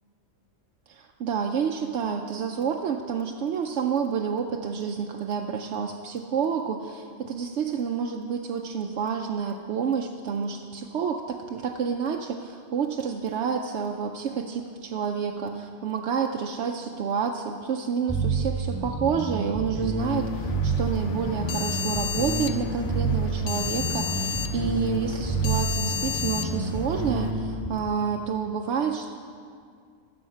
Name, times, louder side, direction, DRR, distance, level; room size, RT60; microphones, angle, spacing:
voice 1, 0.9-29.1, right 6 dB, 70° right, 3 dB, 0.8 m, -29 dB
sound 1, 18.1-27.7, right 3 dB, 5° left, 2.7 m, -28 dB
sound 2, 20.0-27.3, left 9 dB, 75° left, 0.9 m, -33 dB
13.0 x 7.1 x 5.5 m, 2.2 s
omnidirectional pair, 1.3 m